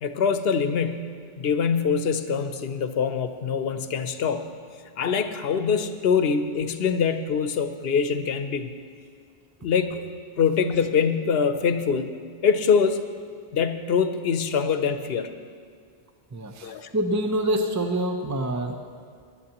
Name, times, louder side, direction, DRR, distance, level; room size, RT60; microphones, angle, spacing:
voice 1, 0.0-4.5 5.0-8.7 9.6-10.1 10.4-12.1 12.4-13.0 13.5-15.3 16.6-16.9, left 6 dB, 75° left, 9 dB, 0.9 m, -24 dB
voice 2, 16.3-18.8, right 1 dB, 20° right, 4 dB, 0.6 m, -26 dB
20.0 x 11.5 x 3.0 m, 2.1 s
omnidirectional pair, 1.0 m